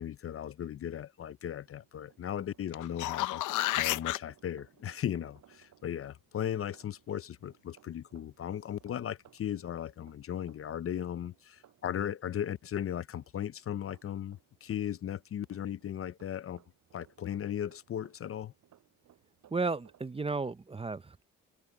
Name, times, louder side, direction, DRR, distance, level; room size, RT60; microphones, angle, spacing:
voice 1, 0.0-3.4 3.7-16.6 16.9-18.5, left 10 dB, 45° left, 0.6 m, -37 dB
sound 1, 1.6-20.1, right 11 dB, 70° right, 6.3 m, -64 dB
sound 2, 2.7-4.2 9.0-9.1, left 16 dB, 85° left, 0.7 m, -31 dB
voice 2, 19.5-21.2, right 4 dB, 20° right, 0.8 m, -34 dB
cardioid pair, 90°, 30 cm